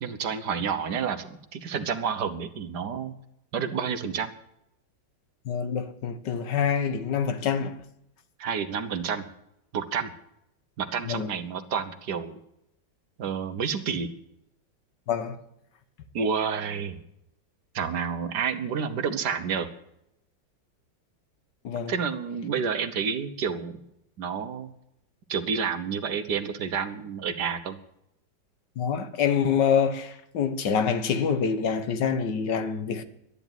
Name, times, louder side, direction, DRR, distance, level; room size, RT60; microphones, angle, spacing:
voice 1, 0.0-3.1 3.5-4.3 8.4-9.3 9.7-10.1 10.8-12.4 13.2-14.1 16.1-17.0 17.7-19.7 21.9-23.8 24.2-24.7 25.3-27.8, right 6 dB, 60° right, 1.5 m, -29 dB
voice 2, 5.4-7.8 11.1-11.3 15.1-15.4 21.6-21.9 28.8-33.0, left 7 dB, 65° left, 1.6 m, -26 dB
12.0 x 10.5 x 9.0 m
omnidirectional pair, 2.1 m